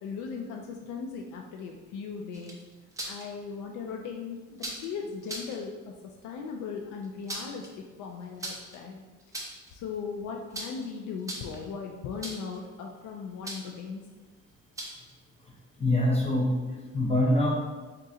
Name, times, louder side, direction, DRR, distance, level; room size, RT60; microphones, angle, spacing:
voice 1, 0.0-2.6 3.0-9.0 9.7-14.0, left 5 dB, 80° left, 2 dB, 0.5 m, -38 dB
sound 1, 2.3-3.2 4.6-4.9 5.2-5.6 7.0-7.7 8.4-8.8 9.2-9.7 10.5-10.9 11.2-11.6 12.2-12.6 13.4-13.8 14.8-15.1, right 1 dB, 10° right, 0.4 m, -38 dB
voice 2, 15.5-17.5, left 1 dB, 20° left, -3 dB, 0.7 m, -25 dB
3.7 x 2.5 x 4.1 m, 1.3 s
cardioid pair, 170°, 30 cm